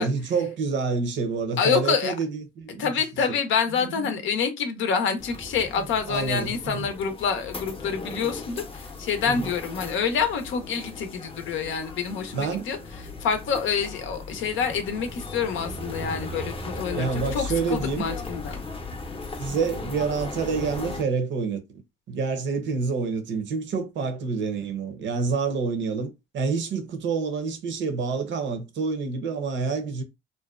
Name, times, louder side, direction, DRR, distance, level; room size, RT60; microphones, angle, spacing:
voice 1, 0.0-2.9 5.8-6.9 9.3-9.5 12.3-12.7 16.9-18.1 19.4-21.8 22.1-30.0, right 5 dB, 70° right, 0.7 m, -28 dB
voice 2, 1.6-2.1 2.8-12.8 13.2-17.4 17.7-18.6, left 6 dB, 80° left, 0.5 m, -27 dB
sound 1, 5.2-21.0, left 3 dB, 30° left, 0.6 m, -37 dB
2.6 x 2.1 x 2.3 m
cardioid pair, 90°, 20 cm